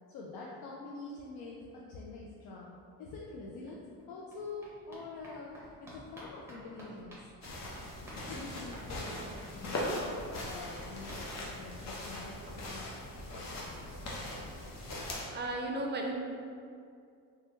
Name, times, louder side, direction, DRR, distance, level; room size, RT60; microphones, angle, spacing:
voice 1, 0.1-7.3 8.3-13.0, left 3 dB, 80° left, -4 dB, 0.5 m, -46 dB
sound 1, 3.4-3.5 3.7-12.2 12.5-12.6 12.8-12.9 13.2-13.3, equal, 5° right, 1.0 m, -53 dB
sound 2, 7.4-15.2, left 1 dB, 45° left, 0.8 m, -40 dB
voice 2, 15.3-16.1, right 1 dB, 30° right, 1 dB, 0.4 m, -34 dB
3.3 x 2.2 x 3.0 m, 2.3 s
cardioid pair, 85°, 38 cm